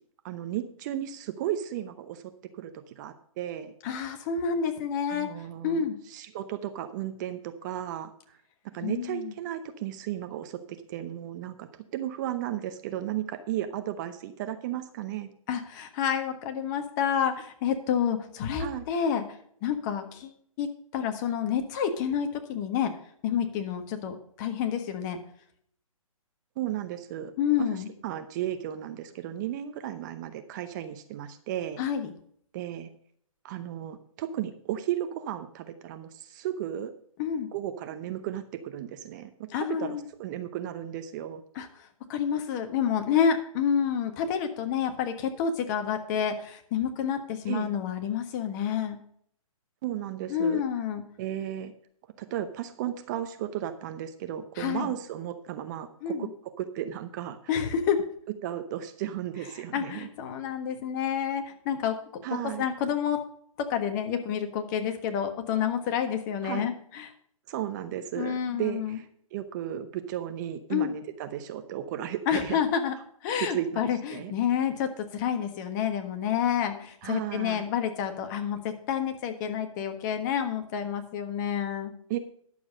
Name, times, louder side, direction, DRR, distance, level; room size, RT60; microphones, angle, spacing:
voice 1, 0.2-2.2 2.5-3.7 5.1-8.4 8.7-15.3 18.6-18.8 26.6-27.3 27.6-31.8 32.5-32.9 33.4-36.9 37.5-41.4 47.5-47.7 49.8-50.6 51.2-51.7 52.2-56.3 56.6-57.6 58.4-60.1 62.2-62.7 66.4-66.7 67.5-72.6 73.4-74.3 77.0-77.6 82.1-82.2, right 11 dB, 30° right, 9 dB, 0.8 m, -34 dB
voice 2, 3.8-5.3 5.6-5.9 8.8-9.3 15.5-19.2 19.6-20.7 20.9-22.9 23.2-25.2 27.4-27.9 31.8-32.1 37.2-37.5 39.5-40.0 41.5-41.7 42.1-49.0 50.3-51.0 54.6-54.9 56.0-56.3 57.5-58.0 59.7-62.2 62.6-63.2 63.7-67.1 68.2-69.0 70.7-70.9 72.3-72.9 73.2-81.9, left 8 dB, 30° left, 6 dB, 1.5 m, -29 dB
11.0 x 7.2 x 5.2 m, 0.64 s
hypercardioid pair, 140°, 18 cm